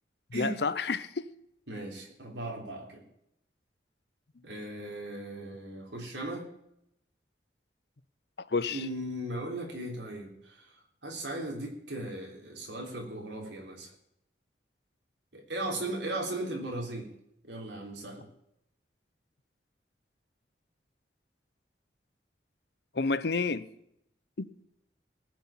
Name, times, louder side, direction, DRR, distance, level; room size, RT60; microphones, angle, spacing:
voice 1, 0.3-1.3 8.5-8.9 22.9-23.7 24.4-24.5, left 4 dB, 65° left, 0.7 m, -29 dB
voice 2, 1.7-3.0 4.4-6.5 8.7-10.7 11.0-13.9 15.3-17.1 17.4-18.3, right 1 dB, 80° right, 3.5 m, -37 dB
18.5 x 6.3 x 7.3 m
head